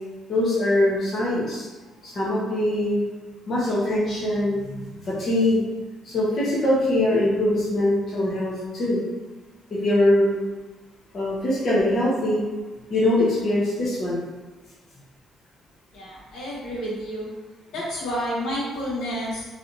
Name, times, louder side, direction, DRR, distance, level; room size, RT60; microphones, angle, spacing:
voice 1, 0.3-1.6 2.0-3.0 3.5-5.6 6.0-9.0 9.7-10.3 11.1-12.4 12.9-14.2, left 1 dB, 35° left, -8 dB, 0.9 m, -22 dB
voice 2, 15.9-17.3 17.7-19.4, equal, 70° left, -7 dB, 1.4 m, -30 dB
3.3 x 2.8 x 3.9 m, 1.2 s
cardioid pair, 165°, 0 cm